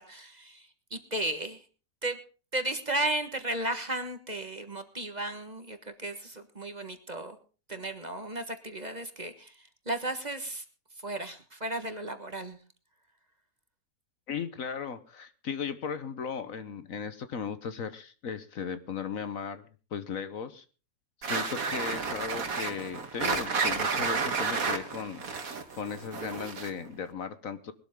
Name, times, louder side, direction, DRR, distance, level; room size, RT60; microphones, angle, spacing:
voice 1, 0.0-1.6 2.0-2.2 2.5-7.4 7.7-10.6 11.0-12.6, right 1 dB, 30° right, 7 dB, 1.5 m, -34 dB
voice 2, 14.3-20.6 21.2-25.2 25.8-27.7, left 6 dB, 60° left, 12 dB, 1.4 m, -36 dB
sound 1, 21.2-26.9, right 4 dB, 60° right, 2.1 m, -31 dB
20.5 x 12.5 x 3.7 m, 0.36 s
omnidirectional pair, 1.7 m